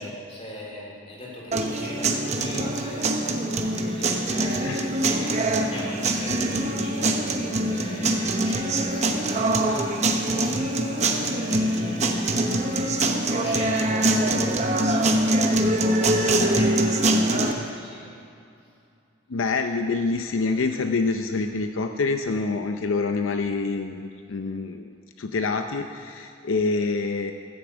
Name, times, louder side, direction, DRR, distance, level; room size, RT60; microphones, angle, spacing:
voice 1, 0.0-7.2 7.6-15.8 16.1-18.1, left 1 dB, 30° left, -4 dB, 3.2 m, -39 dB
sound 1, 1.5-17.5, right 1 dB, 35° right, 0.9 m, -23 dB
voice 2, 19.3-24.9 25.2-27.3, left 3 dB, 75° left, 6 dB, 0.6 m, -26 dB
14.5 x 7.2 x 8.0 m, 2.5 s
head